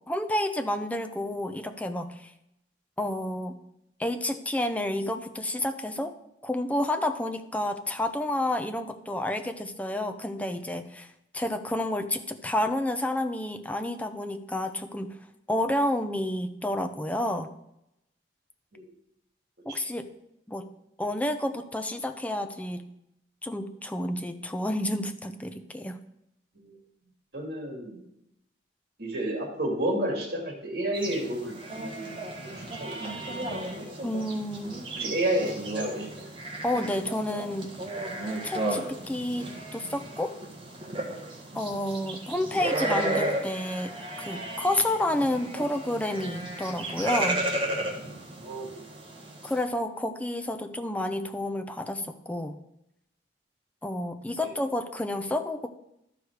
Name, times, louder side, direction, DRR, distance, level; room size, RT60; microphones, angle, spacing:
voice 1, 0.1-2.3 3.0-3.6 4.0-6.2 6.4-11.1 11.3-15.2 15.5-17.5 19.7-20.1 20.5-20.7 21.0-22.9 23.4-26.0 34.0-34.8 36.6-37.8 38.4-40.3 41.5-47.5 49.4-52.6 53.8-55.7, left 1 dB, 10° left, 7 dB, 0.5 m, -30 dB
voice 2, 27.3-28.0 29.0-32.5 32.8-33.9 35.0-36.3 48.4-48.9 54.4-54.5, right 1 dB, 60° right, 1 dB, 2.3 m, -31 dB
sound 1, 30.9-49.6, right 1 dB, 30° right, 1.5 m, -34 dB
12.5 x 4.8 x 4.7 m, 0.83 s
head